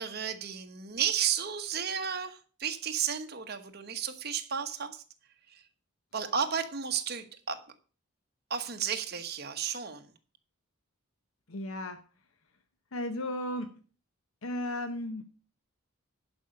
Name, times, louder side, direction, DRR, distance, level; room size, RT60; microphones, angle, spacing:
voice 1, 0.0-5.0 5.5-5.6 6.1-7.6 8.5-10.1, right 8 dB, 45° right, 7 dB, 1.1 m, -33 dB
voice 2, 11.5-12.0 12.9-13.7 14.4-15.2, left 1 dB, 70° left, 9 dB, 0.8 m, -34 dB
11.0 x 5.3 x 6.6 m, 0.39 s
head